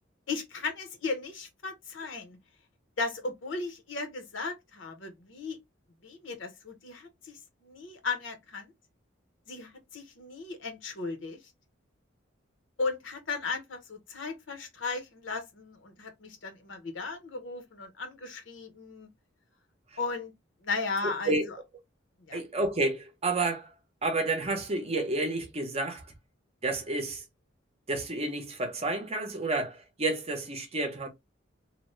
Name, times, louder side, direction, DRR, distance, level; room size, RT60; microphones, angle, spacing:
voice 1, 0.3-2.4 3.0-5.6 6.0-8.7 9.5-11.4 12.8-19.1 20.0-20.3 20.6-21.6 22.3-22.4, left 4 dB, 70° left, 0.9 m, -36 dB
voice 2, 21.0-21.5 22.3-23.7 24.0-26.0 26.6-27.2 27.9-31.1, right 2 dB, 35° right, 0.7 m, -30 dB
2.9 x 2.2 x 3.0 m
head